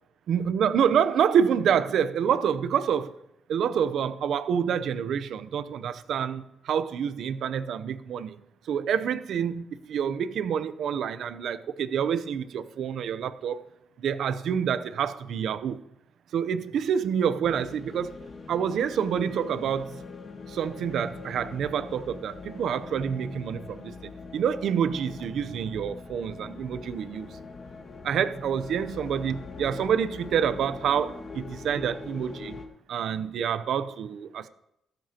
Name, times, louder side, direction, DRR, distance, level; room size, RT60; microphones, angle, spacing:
voice 1, 0.3-3.1 3.5-8.4 8.7-13.6 14.0-15.8 16.3-18.2 18.5-19.9 20.5-27.3 28.0-32.6 32.9-34.5, right 8 dB, 70° right, 0.7 m, -27 dB
sound 1, 17.4-32.6, left 4 dB, 40° left, 1.8 m, -42 dB
15.5 x 13.0 x 2.9 m
cardioid pair, 95°, 0 cm